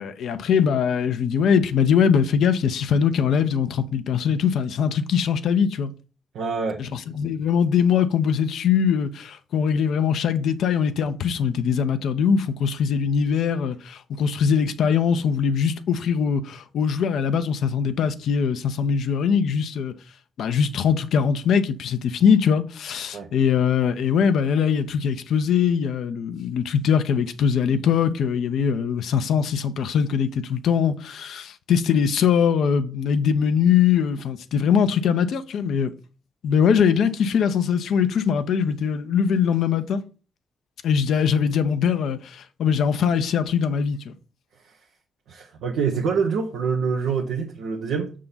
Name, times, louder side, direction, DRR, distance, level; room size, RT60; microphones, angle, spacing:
voice 1, 0.0-5.9 6.8-19.9 20.4-35.9 36.4-40.0 40.8-44.1, left 7 dB, 70° left, 0.7 m, -22 dB
voice 2, 6.3-6.8 23.1-23.3 44.6-44.8 45.3-48.1, right 5 dB, 75° right, 1.0 m, -26 dB
6.7 x 3.7 x 5.6 m
hypercardioid pair, 45°, 0 cm